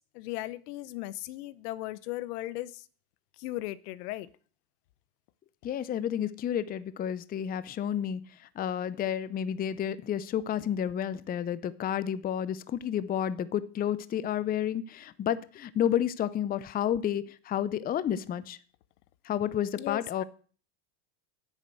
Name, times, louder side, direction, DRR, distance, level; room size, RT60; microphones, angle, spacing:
voice 1, 0.0-2.8 3.4-4.3 19.8-20.2, left 16 dB, 80° left, 1.0 m, -37 dB
voice 2, 5.6-18.6 19.2-20.2, left 10 dB, 20° left, 0.5 m, -31 dB
10.5 x 8.3 x 7.8 m
supercardioid pair, 130°, 45 cm